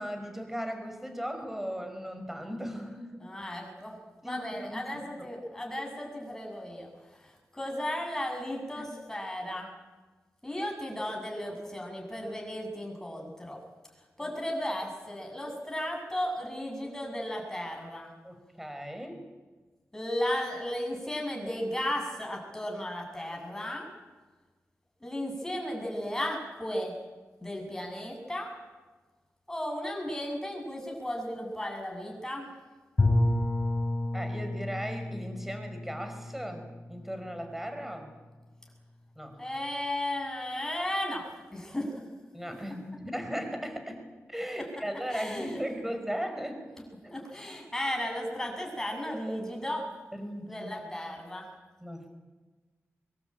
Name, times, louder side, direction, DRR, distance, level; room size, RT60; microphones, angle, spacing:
voice 1, 0.0-3.2 4.2-4.8 8.8-8.9 14.2-14.3 18.2-19.2 34.1-38.1 39.2-39.4 42.3-44.0 44.3-46.6 47.0-47.2 50.1-50.9 51.8-52.1, equal, 5° right, 6 dB, 4.9 m, -37 dB
voice 2, 3.2-4.0 4.2-6.9 7.2-9.7 10.4-13.6 14.2-18.1 19.9-23.9 25.0-26.9 27.4-28.5 29.5-32.5 39.4-42.0 45.1-45.9 47.1-49.9 50.5-51.5, left 1 dB, 10° left, 0 dB, 7.9 m, -35 dB
Bowed string instrument, 33.0-37.8, left 2 dB, 30° left, 4.7 m, -30 dB
24.5 x 22.5 x 9.1 m, 1.3 s
wide cardioid pair, 130°, 5 cm